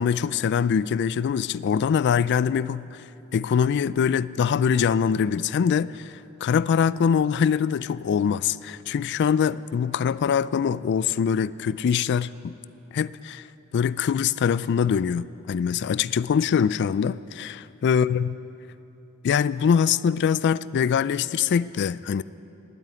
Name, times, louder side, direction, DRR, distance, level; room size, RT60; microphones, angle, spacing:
voice 1, 0.0-3.0 3.3-6.1 6.4-12.5 12.9-13.4 13.7-18.3 19.2-22.2, left 7 dB, 55° left, 18 dB, 0.3 m, -23 dB
16.0 x 9.1 x 9.7 m, 3.0 s
head